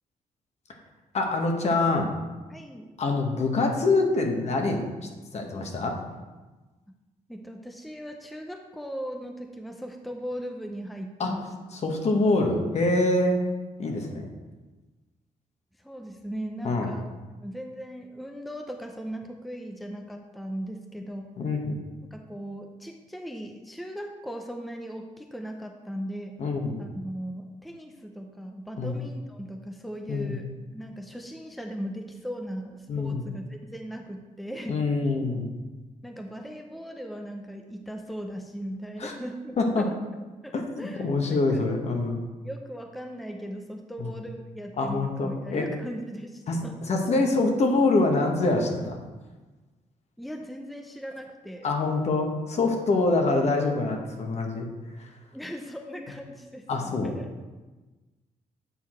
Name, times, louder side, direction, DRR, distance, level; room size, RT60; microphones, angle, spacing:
voice 1, 1.1-2.1 3.0-4.8 5.3-6.0 11.2-11.3 11.8-13.4 13.8-14.3 16.6-16.9 21.4-21.8 26.4-26.8 28.8-29.0 30.1-30.3 32.9-33.2 34.7-35.5 39.0-39.1 39.6-39.9 40.5-42.2 44.0-44.1 44.8-45.7 46.5-46.6 46.9-49.0 51.6-54.7 55.0-55.1 56.7-57.1, left 2 dB, 50° left, 2 dB, 1.2 m, -25 dB
voice 2, 2.5-2.9 6.9-7.0 7.3-11.8 15.8-17.1 17.4-21.3 22.1-26.4 26.8-30.5 30.7-34.8 36.0-40.0 40.4-41.7 42.4-46.8 50.2-51.7 55.3-57.4, equal, ahead, 3 dB, 0.6 m, -38 dB
8.5 x 4.5 x 4.4 m, 1.2 s
cardioid pair, 95°, 14 cm